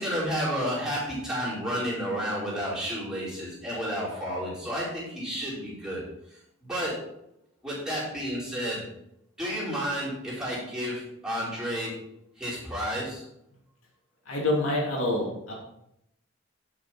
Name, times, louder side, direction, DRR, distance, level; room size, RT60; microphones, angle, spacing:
voice 1, 0.0-6.0 6.3-7.1 7.6-8.9 9.4-12.1 12.4-13.2, equal, 5° right, -9 dB, 4.4 m, -31 dB
voice 2, 14.3-15.5, left 1 dB, 75° left, -3 dB, 2.9 m, -27 dB
11.5 x 6.0 x 4.4 m, 0.79 s
head